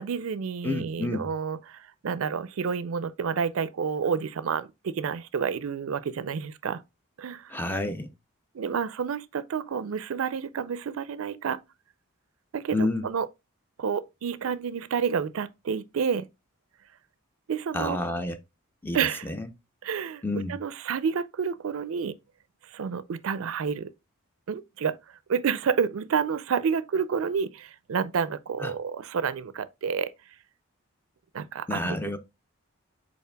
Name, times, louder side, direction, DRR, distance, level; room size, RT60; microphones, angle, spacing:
voice 1, 0.0-6.8 7.2-7.5 8.5-11.6 12.5-13.3 13.8-16.3 17.5-18.0 18.9-19.3 19.8-22.2 22.7-23.9 24.5-25.0 25.3-30.1 31.3-32.0, right 6 dB, 70° right, 0.4 m, -29 dB
voice 2, 0.6-1.3 7.5-8.1 12.7-13.1 17.7-18.4 18.8-19.0 19.3-19.5 20.2-20.6 28.6-28.7 31.7-32.2, left 2 dB, 10° left, 0.4 m, -29 dB
5.6 x 4.3 x 2.2 m
head